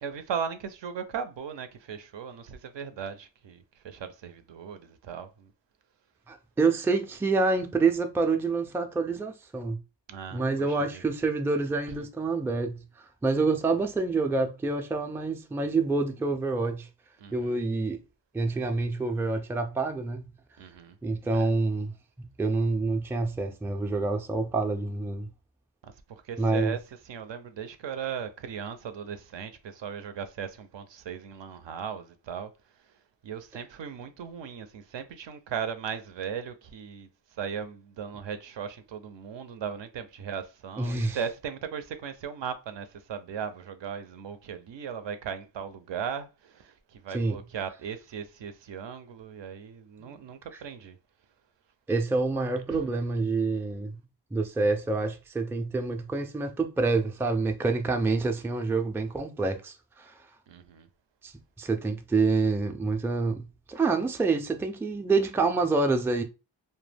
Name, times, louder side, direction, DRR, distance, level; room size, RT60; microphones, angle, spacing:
voice 1, 0.0-5.5 10.1-11.0 11.9-12.1 17.2-17.6 20.6-21.0 21.2-21.5 25.8-26.8 27.0-51.0 52.7-52.9 60.5-60.9, right 7 dB, 70° right, 0.5 m, -38 dB
voice 2, 6.3-9.8 10.3-12.8 13.2-16.9 17.3-18.0 18.3-20.3 21.0-21.9 22.2-25.3 26.4-26.7 40.8-41.2 47.1-47.4 50.0-50.3 51.9-54.0 54.3-60.1 61.2-61.3 61.6-66.2, right 3 dB, 5° right, 0.3 m, -27 dB
2.2 x 2.1 x 3.2 m
cardioid pair, 50°, 46 cm